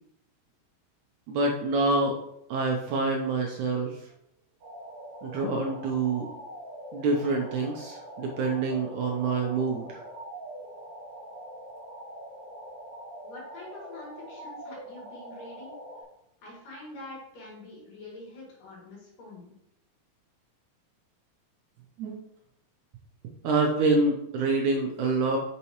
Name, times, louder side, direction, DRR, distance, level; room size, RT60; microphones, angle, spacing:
voice 1, 1.3-2.2 2.5-4.0 5.2-6.3 6.9-10.0 22.0-22.2 23.4-25.4, right 3 dB, 70° right, 1 dB, 1.9 m, -26 dB
sound 1, 4.6-16.0, right 1 dB, 55° right, 3.3 m, -43 dB
voice 2, 13.2-15.7 16.4-19.5, left 2 dB, 65° left, -3 dB, 3.9 m, -45 dB
8.5 x 6.0 x 3.0 m, 0.78 s
omnidirectional pair, 4.1 m